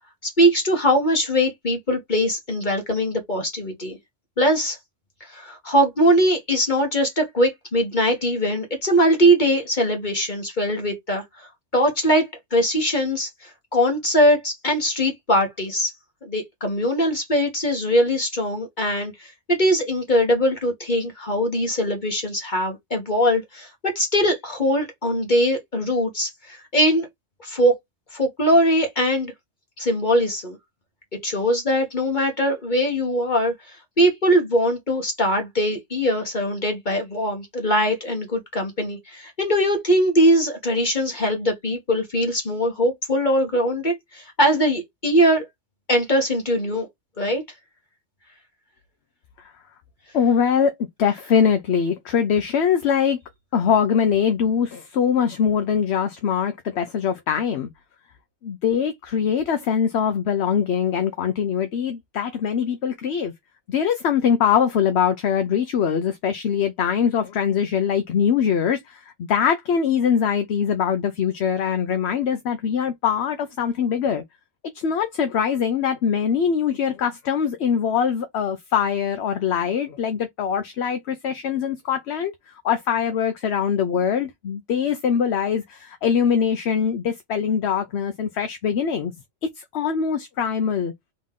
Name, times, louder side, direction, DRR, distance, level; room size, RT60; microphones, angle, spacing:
voice 1, 0.2-4.0 4.4-4.8 5.2-11.5 11.7-12.3 12.5-15.9 16.2-27.1 27.4-27.8 28.1-29.3 29.8-30.6 31.2-45.5 45.9-46.9 47.2-47.4, equal, 40° left, 1.5 m, -21 dB
voice 2, 50.1-50.7 51.0-53.2 53.5-57.7 58.4-63.3 63.7-74.2 74.7-89.1 89.6-90.9, left 7 dB, 65° left, 0.9 m, -22 dB
3.8 x 3.1 x 3.7 m
omnidirectional pair, 1.3 m